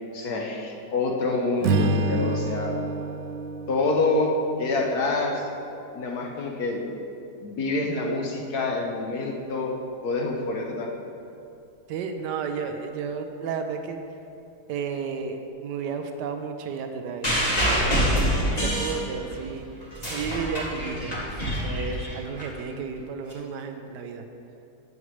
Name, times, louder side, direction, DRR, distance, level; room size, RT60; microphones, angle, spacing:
voice 1, 0.1-2.7 3.7-4.3 4.6-5.5 5.9-6.8 7.4-9.8 10.0-10.9, left 3 dB, 65° left, 0 dB, 1.4 m, -27 dB
Strum, 1.6-6.0, right 2 dB, 65° right, 0.9 m, -29 dB
voice 2, 11.9-14.0 14.7-17.3 17.7-19.6 20.0-24.2, right 5 dB, 85° right, 6 dB, 1.2 m, -33 dB
sound 1, 17.2-19.5 19.8-22.4 23.3-23.4, equal, 25° left, 1.9 m, -25 dB
12.5 x 8.4 x 3.2 m, 2.7 s
omnidirectional pair, 1.8 m